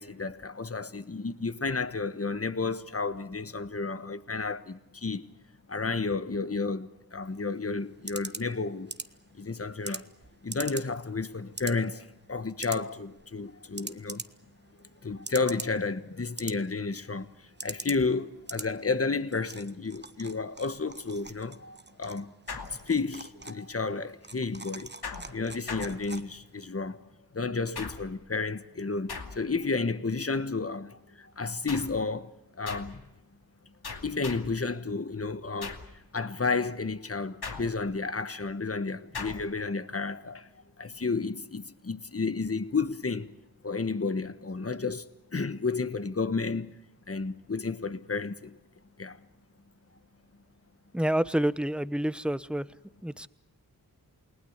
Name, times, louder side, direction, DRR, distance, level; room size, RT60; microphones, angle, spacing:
voice 1, 0.0-5.3 5.7-8.9 9.3-10.1 10.4-14.2 15.0-22.3 22.7-24.9 25.3-27.0 27.3-32.3 32.6-33.0 34.0-35.8 36.1-40.5 40.8-43.4 43.6-46.7 47.1-48.6 49.0-49.2, left 4 dB, 35° left, 1.3 m, -32 dB
sound 1, 7.2-26.6, right 3 dB, 30° right, 1.2 m, -44 dB
sound 2, 22.5-23.3 25.0-26.5 27.7-28.3 29.1-29.7 31.7-32.1 32.7-33.1 33.8-34.6 35.6-36.0 37.4-38.1 39.1-39.6, left 4 dB, 85° left, 2.5 m, -40 dB
voice 2, 50.9-52.7 53.0-53.3, right 1 dB, 5° right, 0.8 m, -28 dB
29.0 x 19.0 x 8.1 m
wide cardioid pair, 65°, 38 cm